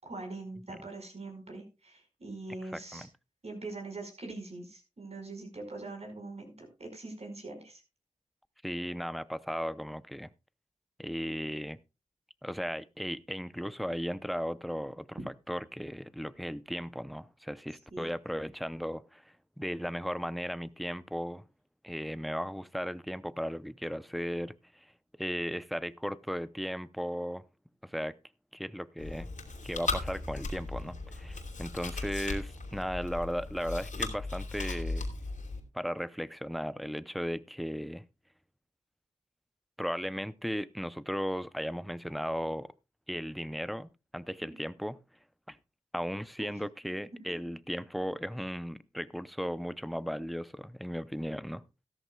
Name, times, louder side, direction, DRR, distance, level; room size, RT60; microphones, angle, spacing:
voice 1, 0.0-3.1 3.4-7.8 17.9-18.1 44.4-44.6 46.4-46.5, right 2 dB, 55° right, 5.1 m, -43 dB
voice 2, 2.7-3.1 8.6-10.3 11.0-11.8 12.4-15.2 15.5-19.2 19.6-21.4 21.8-24.9 25.2-27.4 27.8-28.2 28.5-29.3 29.6-35.1 35.7-38.0 39.8-42.7 43.1-45.0 45.5-45.6 45.9-51.6, equal, ahead, 0.7 m, -36 dB
Chewing mastication, 29.0-35.6, left 3 dB, 75° left, 2.8 m, -37 dB
14.5 x 13.0 x 2.3 m
cardioid pair, 55°, 13 cm